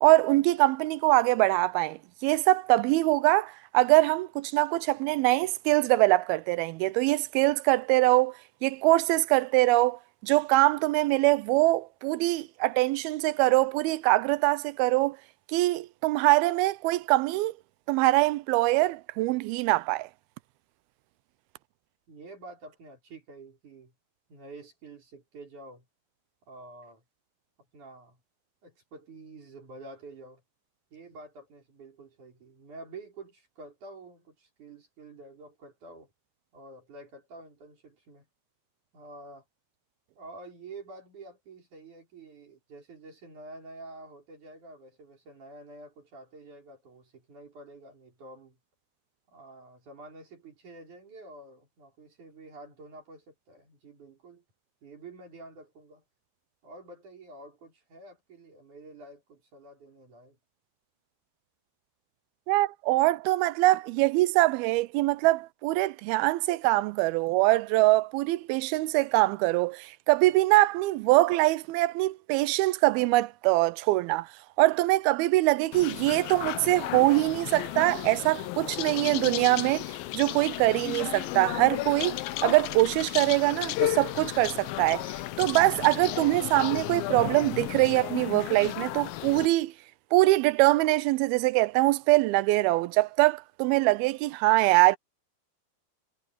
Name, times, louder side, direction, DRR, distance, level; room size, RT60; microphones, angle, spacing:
voice 1, 0.0-8.3 8.6-15.2 15.5-17.5 17.9-20.1 62.5-74.3 74.6-79.9 80.1-85.0 85.4-89.7 90.1-95.0, right 20 dB, 85° right, 2.5 m, -23 dB
voice 2, 22.1-23.9 24.3-25.9 26.5-27.0 27.7-28.2 28.6-30.4 30.9-36.1 36.5-38.2 38.9-39.4 40.2-48.6 49.3-54.4 54.8-56.0 56.6-60.4, right 2 dB, 50° right, 6.7 m, -48 dB
sound 1, 75.7-89.5, left 16 dB, 75° left, 2.4 m, -34 dB
omnidirectional pair, 4.4 m